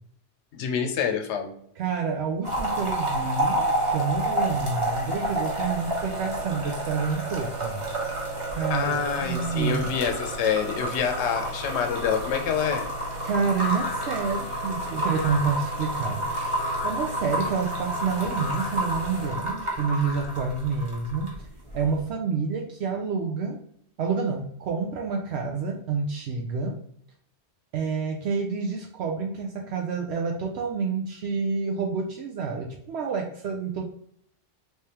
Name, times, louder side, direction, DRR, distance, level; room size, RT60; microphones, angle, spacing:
voice 1, 0.5-1.5 8.7-12.9, left 7 dB, 85° left, 4 dB, 0.9 m, -27 dB
voice 2, 1.8-7.8 8.6-9.9 13.2-21.3 21.7-23.6 24.0-26.8 27.7-33.8, right 5 dB, 75° right, 1 dB, 0.8 m, -28 dB
sound 1, 2.4-21.4 21.7-22.0, right 1 dB, 30° right, 1.0 m, -30 dB
sound 2, 11.9-12.3 13.6-14.4 15.1-15.7 16.6-17.1 18.4-18.9 19.9-20.6, left 3 dB, 50° left, 0.9 m, -37 dB
3.3 x 3.2 x 2.8 m, 0.68 s
omnidirectional pair, 1.1 m